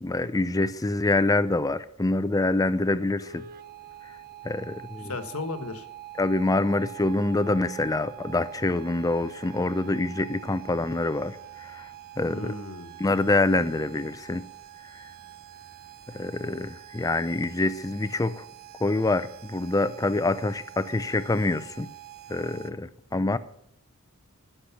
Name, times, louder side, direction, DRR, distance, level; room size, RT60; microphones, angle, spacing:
voice 1, 0.0-3.4 4.4-5.1 6.2-11.4 11.7-11.8 12.2-12.5 13.0-14.4 16.1-18.4 18.8-21.9 22.3-23.4, left 2 dB, 15° left, 0.5 m, -26 dB
sound 1, 3.2-22.7, right 13 dB, 45° right, 0.7 m, -45 dB
voice 2, 5.0-5.9 12.3-12.9, left 2 dB, 75° left, 1.4 m, -35 dB
15.5 x 6.7 x 5.9 m
head